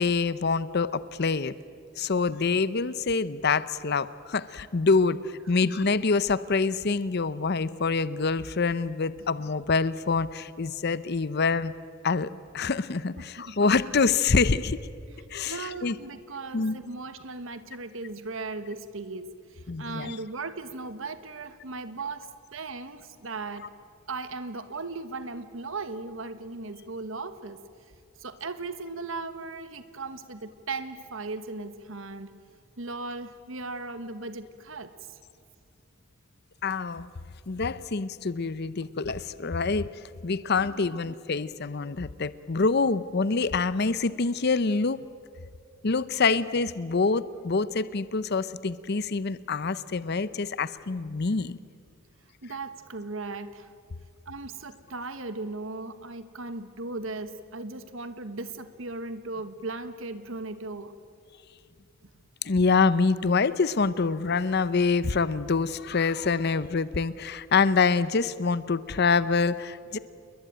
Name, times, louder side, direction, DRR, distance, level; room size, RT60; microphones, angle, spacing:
voice 1, 0.0-1.5 2.0-11.7 12.0-14.8 15.3-15.9 16.5-16.8 19.7-20.2 36.6-37.1 37.5-39.9 40.2-45.0 45.8-51.6 62.4-70.0, left 4 dB, 50° left, 0.7 m, -26 dB
voice 2, 13.2-13.5 15.4-23.8 24.1-27.6 28.2-32.4 32.8-35.2 40.6-41.0 52.4-53.7 54.3-61.0 62.0-62.1, right 3 dB, 70° right, 1.3 m, -37 dB
29.0 x 21.5 x 9.0 m
head